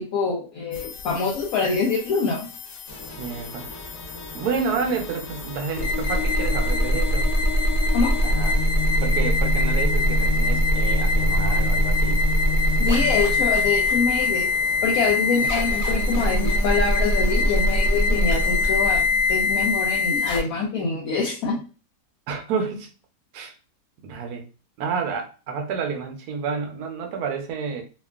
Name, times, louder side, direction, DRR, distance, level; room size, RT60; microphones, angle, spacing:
voice 1, 0.0-2.5 7.9-8.2 12.8-14.5 14.8-21.6, left 4 dB, 70° left, 1.0 m, -25 dB
sound 1, 0.7-20.4, left 1 dB, 85° left, 1.2 m, -22 dB
sound 2, 2.9-18.9, right 1 dB, 40° left, 1.1 m, -41 dB
voice 2, 3.2-3.8 4.3-7.3 8.2-8.6 9.0-12.2 22.3-22.9 23.3-23.5 24.0-24.4 24.8-27.8, right 5 dB, 75° right, 1.1 m, -29 dB
2.9 x 2.3 x 2.3 m
omnidirectional pair, 1.7 m